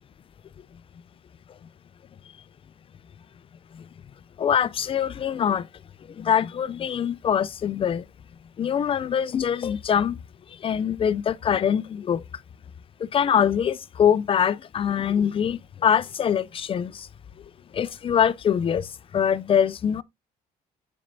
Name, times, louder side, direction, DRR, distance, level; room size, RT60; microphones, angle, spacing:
voice 1, 4.4-5.7 6.2-8.0 8.6-10.2 10.6-12.2 13.0-17.1 17.7-18.9 19.1-20.0, left 8 dB, 35° left, 0.4 m, -23 dB
9.2 x 4.4 x 2.6 m
cardioid pair, 110°, 17 cm